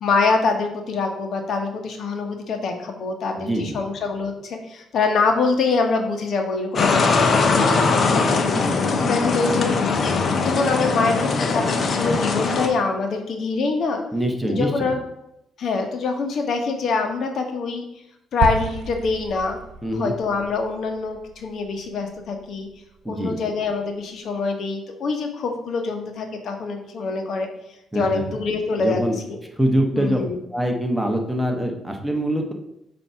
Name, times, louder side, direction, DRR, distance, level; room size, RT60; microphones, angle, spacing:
voice 1, 0.0-8.2 8.9-9.7 10.3-14.0 14.4-15.0 15.6-17.8 18.3-19.6 19.9-22.7 23.1-27.5 27.9-29.0 29.3-29.4 29.9-30.4, left 4 dB, 65° left, 4 dB, 1.0 m, -25 dB
voice 2, 3.4-3.8 8.5-8.8 14.1-14.9 19.8-20.1 23.0-23.4 27.9-28.2 28.8-29.1 29.5-30.2 30.5-32.5, equal, 5° right, 3 dB, 1.0 m, -24 dB
sound 1, 6.8-12.7, left 4 dB, 45° left, 0.8 m, -20 dB
sound 2, 18.4-22.8, right 5 dB, 80° right, 0.5 m, -32 dB
7.2 x 2.8 x 5.6 m, 0.83 s
cardioid pair, 90°, 0 cm